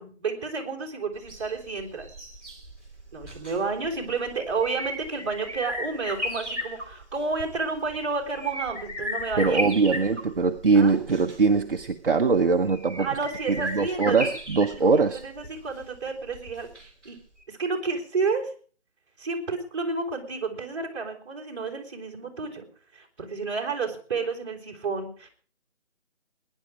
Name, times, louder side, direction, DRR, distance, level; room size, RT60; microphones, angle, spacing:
voice 1, 0.0-2.1 3.1-9.7 10.7-11.0 13.0-14.3 14.8-16.7 17.0-17.2 17.5-18.5 19.2-22.6 22.9-25.3, right 4 dB, 25° right, -2 dB, 3.8 m, -31 dB
sound 1, 1.2-17.1 17.4-17.5, equal, ahead, 2.3 m, -36 dB
voice 2, 9.4-13.1 13.5-15.2, right 4 dB, 50° right, 5 dB, 1.0 m, -22 dB
21.0 x 10.5 x 4.9 m, 0.43 s
figure-of-eight pair, 165°, 34 cm